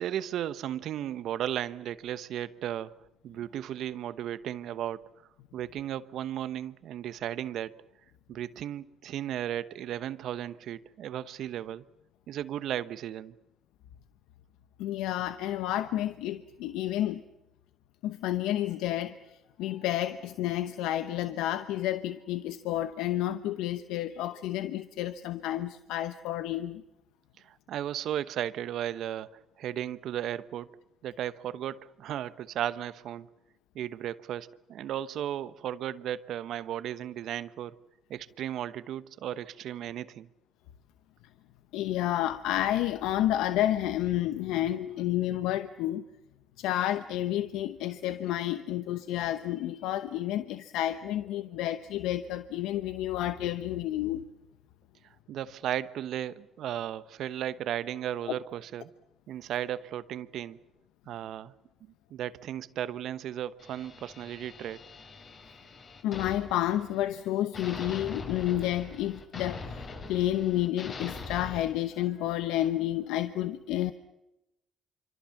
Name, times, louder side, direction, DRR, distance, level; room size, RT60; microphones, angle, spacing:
voice 1, 0.0-2.9 3.2-5.1 5.5-7.8 8.3-11.8 12.3-13.3 27.4-30.7 31.0-33.3 33.7-37.7 38.1-40.3 55.3-58.9 59.3-60.6 61.1-61.5 62.1-64.8, right 11 dB, 70° right, 1.0 m, -35 dB
voice 2, 14.8-17.2 18.0-19.2 19.6-26.8 41.7-46.1 46.6-54.2 66.0-69.8 70.1-73.9, left 13 dB, 85° left, 0.9 m, -30 dB
sound 1, 63.6-67.2 67.5-71.6, left 4 dB, 55° left, 8.0 m, -43 dB
26.0 x 25.0 x 7.2 m
supercardioid pair, 70°, 0 cm